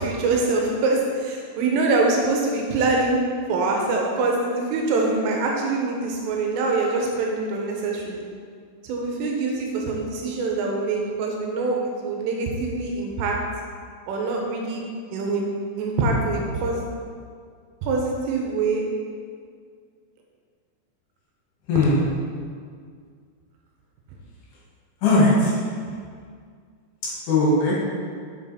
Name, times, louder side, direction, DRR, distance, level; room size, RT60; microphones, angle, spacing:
voice 1, 0.0-3.2 3.5-8.2 8.8-11.8 12.0-13.4 14.1-14.8 15.1-15.4 15.8-16.9 17.8-18.8, right 3 dB, 85° right, 0 dB, 3.4 m, -24 dB
voice 2, 21.7-22.0 25.0-25.6 27.3-27.7, left 2 dB, 65° left, -7 dB, 3.6 m, -18 dB
7.4 x 6.3 x 4.2 m, 2.1 s
omnidirectional pair, 5.7 m